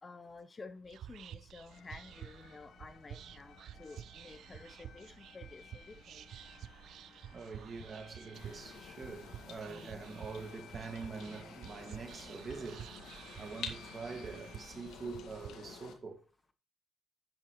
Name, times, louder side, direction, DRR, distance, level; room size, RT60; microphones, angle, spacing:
voice 1, 0.0-6.3 9.7-10.0, left 3 dB, 30° left, 1.0 m, -52 dB
Whispering, 0.8-15.5, right 10 dB, 70° right, 0.4 m, -51 dB
sound 1, 1.7-14.8, left 6 dB, 60° left, 1.7 m, -59 dB
voice 2, 7.3-12.9 13.4-16.2, right 4 dB, 40° right, 2.1 m, -45 dB
sound 2, 8.3-15.9, left 7 dB, 85° left, 2.1 m, -50 dB
10.5 x 8.8 x 3.2 m
cardioid pair, 90°, 0 cm